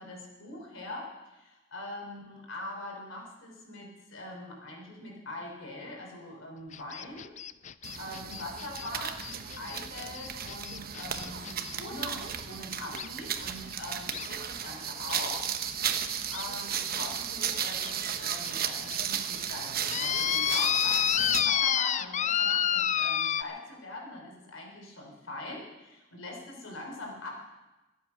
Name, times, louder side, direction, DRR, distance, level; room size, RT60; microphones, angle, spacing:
voice 1, 0.0-7.3 8.0-15.5 16.3-27.3, left 2 dB, 70° left, 0 dB, 4.3 m, -42 dB
sound 1, 6.7-11.7 13.0-13.1 14.1-14.3 15.1-15.2 15.7-15.8 16.3-16.4 17.2-17.3 17.8-17.9 18.4-18.5 18.9-19.0 19.9-23.4, left 9 dB, 35° left, 0.4 m, -29 dB
sound 2, 7.8-21.6, right 8 dB, 50° right, 1.0 m, -35 dB
24.5 x 8.4 x 6.2 m, 1.1 s
head